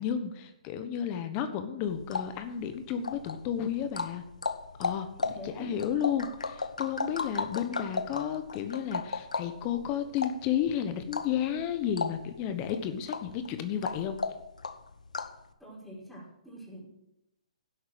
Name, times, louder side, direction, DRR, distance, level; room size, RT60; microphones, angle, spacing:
voice 1, 0.0-4.2 4.8-5.1 5.4-14.2, left 9 dB, 30° left, 9 dB, 1.1 m, -32 dB
sound 1, 1.9-15.4, left 4 dB, 85° left, 1.1 m, -36 dB
voice 2, 5.2-5.7 15.6-16.9, equal, ahead, -5 dB, 5.0 m, -45 dB
11.5 x 7.9 x 7.7 m, 0.87 s
hypercardioid pair, 135°, 4 cm